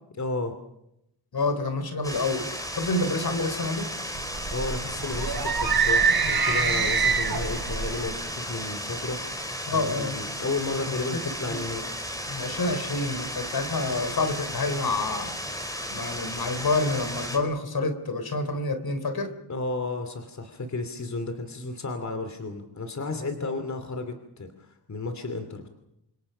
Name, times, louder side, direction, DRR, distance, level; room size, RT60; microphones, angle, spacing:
voice 1, 0.2-0.6 4.5-9.4 9.7-11.8 19.5-25.7, left 3 dB, 40° left, 7 dB, 2.8 m, -33 dB
voice 2, 1.3-2.5 2.7-3.9 9.7-10.2 10.9-11.0 11.5-11.6 12.3-15.4 15.9-19.4, left 3 dB, 55° left, 9 dB, 3.7 m, -28 dB
sound 1, 2.0-17.4, equal, 10° left, 4.4 m, -34 dB
sound 2, 4.1-8.1, right 5 dB, 60° right, 4.7 m, -25 dB
29.5 x 26.5 x 5.7 m, 0.83 s
wide cardioid pair, 135°, 43 cm